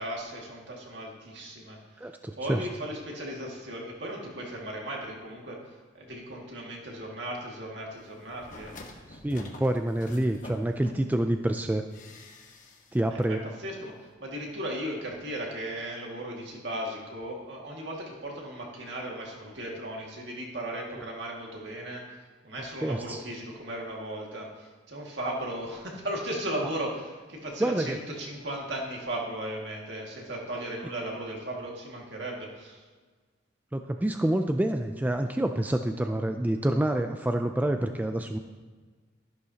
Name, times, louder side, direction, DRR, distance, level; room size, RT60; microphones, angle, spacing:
voice 1, 0.0-2.1 2.4-5.6 5.9-8.8 13.1-32.8, right 1 dB, 60° right, -1 dB, 2.0 m, -36 dB
voice 2, 2.0-2.7 9.1-11.8 12.9-13.4 22.8-23.2 27.6-28.0 33.7-38.4, right 1 dB, 10° right, 6 dB, 0.3 m, -27 dB
sound 1, 8.2-11.3 11.9-13.0 13.2-13.3, left 1 dB, 45° left, 1.1 m, -47 dB
12.5 x 11.0 x 2.9 m, 1.4 s
head